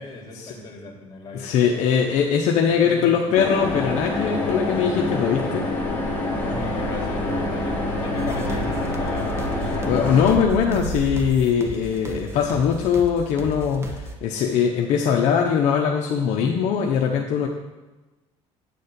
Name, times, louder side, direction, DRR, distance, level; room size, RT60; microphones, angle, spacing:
voice 1, 0.0-1.9 2.7-3.5 6.5-9.5, left 3 dB, 35° left, 0 dB, 2.2 m, -37 dB
voice 2, 1.3-5.7 9.8-17.5, left 7 dB, 65° left, 1 dB, 0.8 m, -21 dB
sound 1, 3.3-10.4, left 2 dB, 15° left, 2.3 m, -26 dB
sound 2, 6.3-11.4, right 3 dB, 70° right, 1.1 m, -33 dB
sound 3, 8.2-14.1, right 2 dB, 20° right, 0.9 m, -36 dB
9.1 x 4.3 x 6.7 m, 1.1 s
cardioid pair, 130°, 13 cm